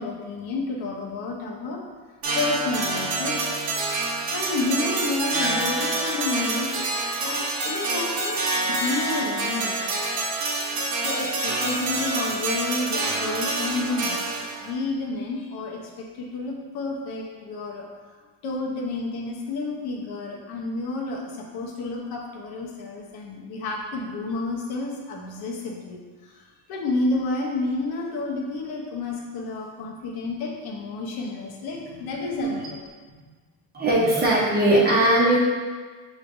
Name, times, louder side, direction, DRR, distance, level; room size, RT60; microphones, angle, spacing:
voice 1, 0.0-1.8 2.3-3.6 4.3-6.9 7.2-8.4 8.7-10.0 11.0-14.2 14.6-17.9 18.4-26.3 26.7-32.7, left 3 dB, 70° left, -1 dB, 0.9 m, -30 dB
sound 1, 2.2-14.7, right 2 dB, 65° right, 0.9 m, -27 dB
voice 2, 33.7-35.4, right 1 dB, 25° right, -5 dB, 0.8 m, -19 dB
6.2 x 3.2 x 2.6 m, 1.4 s
cardioid pair, 180°, 39 cm